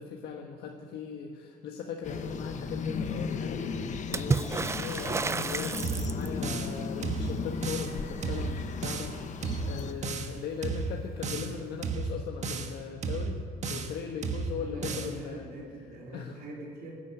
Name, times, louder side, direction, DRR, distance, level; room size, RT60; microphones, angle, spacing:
voice 1, 0.0-9.3 9.6-13.4 13.7-15.5 16.1-16.4, left 6 dB, 70° left, 1 dB, 1.5 m, -39 dB
sound 1, 2.0-9.9, left 5 dB, 45° left, 1.2 m, -36 dB
Water / Splash splatter, 4.1-6.5 9.8-9.9 10.2-10.9 12.0-12.1, right 4 dB, 15° right, 0.4 m, -31 dB
sound 2, 5.8-6.8 7.0-7.9 8.2-9.1 9.4-10.3 10.6-11.5 11.8-12.7 13.0-14.0 14.2-15.1, right 4 dB, 45° right, 1.4 m, -33 dB
voice 2, 11.0-11.5 14.6-17.0, right 1 dB, 65° right, -2 dB, 3.5 m, -44 dB
15.5 x 9.6 x 9.2 m, 2.4 s
cardioid pair, 110°, 17 cm